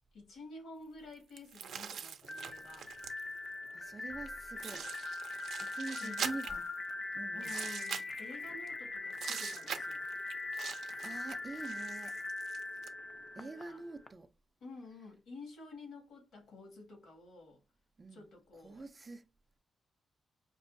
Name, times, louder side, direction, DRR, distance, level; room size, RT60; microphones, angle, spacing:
voice 1, 0.1-2.9 6.0-6.6 7.3-10.0 13.4-13.8 14.6-17.6 18.1-18.8, left 2 dB, 85° left, 2.1 m, -51 dB
sound 1, 1.4-3.4 4.3-4.4 4.6-6.9 7.4-8.7 9.1-12.9, right 7 dB, 75° right, 0.5 m, -43 dB
sound 2, 2.2-14.1, left 2 dB, 30° left, 0.5 m, -41 dB
voice 2, 3.7-4.9 5.6-6.6 7.1-7.6 11.0-12.2 13.4-14.3 18.0-18.3 18.5-19.3, right 3 dB, 25° right, 0.4 m, -45 dB
5.3 x 2.5 x 2.6 m
cardioid pair, 130°, 0 cm